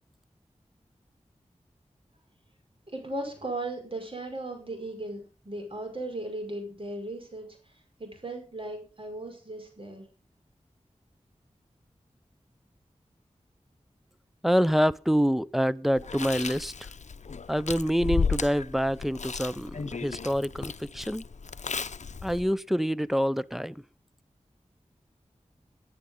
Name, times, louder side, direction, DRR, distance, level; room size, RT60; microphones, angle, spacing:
voice 1, 2.9-7.5 8.0-10.0, right 2 dB, 45° right, 5.4 m, -37 dB
voice 2, 14.4-16.7 17.5-21.2 22.2-23.8, equal, ahead, 0.6 m, -26 dB
Chewing mastication, 16.0-22.5, left 5 dB, 70° left, 0.7 m, -34 dB
20.0 x 10.5 x 3.8 m
wide cardioid pair, 65°, 12 cm